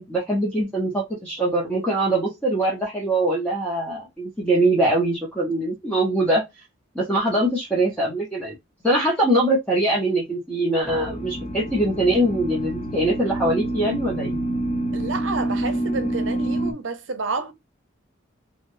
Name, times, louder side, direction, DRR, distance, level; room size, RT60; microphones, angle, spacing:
voice 1, 0.0-6.5 6.9-8.5 8.8-14.4, right 1 dB, 5° left, 0.9 m, -22 dB
sound 1, 10.8-16.7, right 1 dB, 30° left, 0.7 m, -27 dB
voice 2, 14.9-17.5, right 3 dB, 70° right, 0.7 m, -29 dB
3.5 x 2.4 x 2.6 m
head